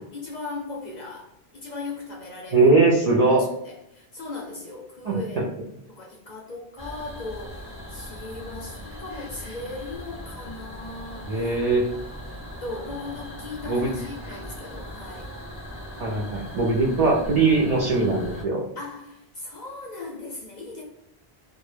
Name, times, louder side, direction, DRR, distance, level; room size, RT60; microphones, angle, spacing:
voice 1, 0.0-2.7 3.1-3.4 3.6-5.5 5.9-11.5 11.9-12.0 12.6-15.3 18.8-20.8, left 3 dB, 55° left, -1 dB, 0.5 m, -38 dB
voice 2, 2.5-3.4 5.0-5.2 11.3-11.9 13.7-13.9 16.0-18.6, right 3 dB, 55° right, -4 dB, 0.4 m, -20 dB
sound 1, 6.8-18.4, equal, 15° right, 0.7 m, -39 dB
2.1 x 2.0 x 3.1 m, 0.78 s
omnidirectional pair, 1.1 m